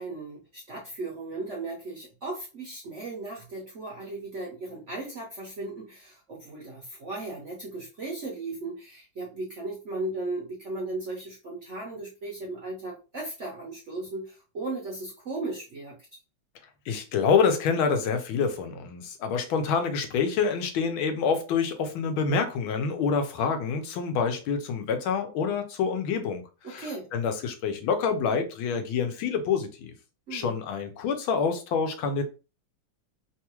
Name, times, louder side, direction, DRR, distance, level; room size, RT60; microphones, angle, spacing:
voice 1, 0.0-16.0 26.6-27.1 30.3-30.5, right 2 dB, 60° right, 0.7 m, -36 dB
voice 2, 16.9-29.9 30.3-32.2, left 5 dB, 90° left, 1.5 m, -27 dB
3.6 x 2.3 x 2.9 m
omnidirectional pair, 2.2 m